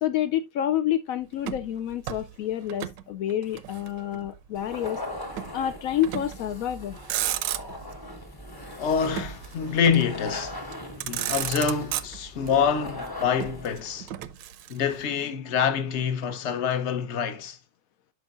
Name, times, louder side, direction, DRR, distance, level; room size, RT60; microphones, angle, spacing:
voice 1, 0.0-5.0 5.5-7.0, left 11 dB, 80° left, 0.7 m, -28 dB
Motor vehicle (road), 1.4-3.0 3.3-4.4 5.4-5.6 6.0-6.5 6.9-8.0 9.2-10.2 10.7-10.8 11.0-12.5 13.4-15.0, right 12 dB, 75° right, 1.2 m, -33 dB
sound 1, 4.5-13.9, left 1 dB, 20° left, 0.7 m, -39 dB
voice 2, 8.8-10.6 11.0-14.1 14.7-17.6, left 7 dB, 50° left, 0.9 m, -26 dB
11.5 x 4.7 x 2.4 m
omnidirectional pair, 2.0 m